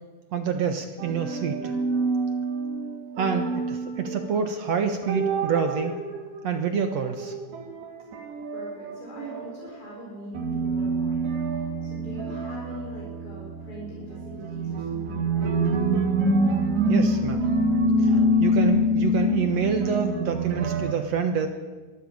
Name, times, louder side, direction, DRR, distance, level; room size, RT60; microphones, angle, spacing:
voice 1, 0.3-1.7 3.2-6.0 6.4-7.4 16.9-17.5 18.0-18.1 18.4-21.5, right 6 dB, 60° right, 6 dB, 1.8 m, -27 dB
sound 1, 1.0-4.4 4.7-9.6 9.9-10.0 10.3-20.9, right 1 dB, 90° right, 4.9 m, -26 dB
voice 2, 8.5-15.5 18.1-18.7, left 1 dB, 20° left, -5 dB, 6.7 m, -42 dB
23.0 x 13.5 x 8.8 m, 1.3 s
omnidirectional pair, 4.5 m